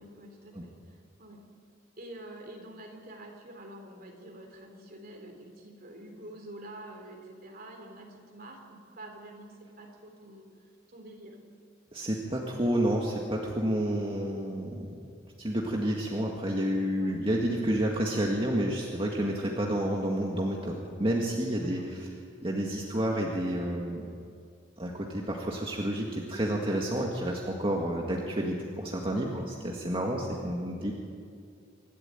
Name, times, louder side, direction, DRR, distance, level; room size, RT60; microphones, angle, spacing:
voice 1, 0.0-1.4 2.0-10.4 10.9-11.4 17.0-17.2 21.6-21.9 29.3-29.5 30.0-30.1, right 1 dB, 50° right, 2 dB, 3.7 m, -47 dB
voice 2, 11.9-14.9 15.4-22.1 22.4-24.0 24.8-30.9, right 1 dB, 25° right, -1 dB, 1.9 m, -30 dB
26.0 x 12.5 x 9.1 m, 2.3 s
head